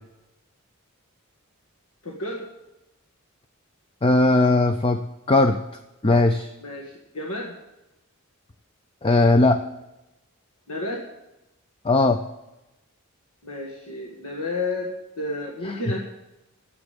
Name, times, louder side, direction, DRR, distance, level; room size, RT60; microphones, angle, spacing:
voice 1, 2.0-2.4 6.6-7.5 10.7-11.0 13.4-14.9 15.2-16.0, left 2 dB, 80° left, -1 dB, 1.7 m, -31 dB
voice 2, 4.0-5.0 5.3-5.6 6.0-6.5 9.0-9.6 11.8-12.2, left 2 dB, 25° left, 7 dB, 0.5 m, -18 dB
10.0 x 7.5 x 9.0 m, 0.97 s
head